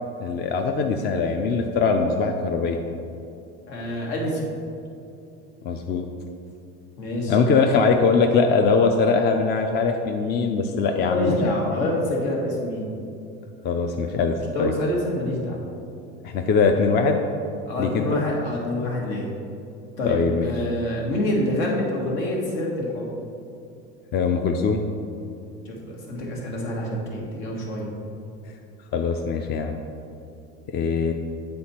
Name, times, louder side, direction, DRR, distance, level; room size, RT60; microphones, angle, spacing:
voice 1, 0.2-2.8 5.6-6.0 7.3-11.4 13.6-14.7 16.2-17.2 17.8-18.2 20.0-20.5 24.1-24.8 28.9-29.8 30.7-31.1, left 4 dB, 30° left, 4 dB, 0.4 m, -22 dB
voice 2, 3.7-4.5 7.0-7.4 11.0-12.9 14.5-15.6 17.7-19.3 20.0-23.1 25.6-27.9, left 1 dB, 75° left, -2 dB, 1.7 m, -26 dB
7.8 x 4.2 x 4.3 m, 2.6 s
supercardioid pair, 115°, 32 cm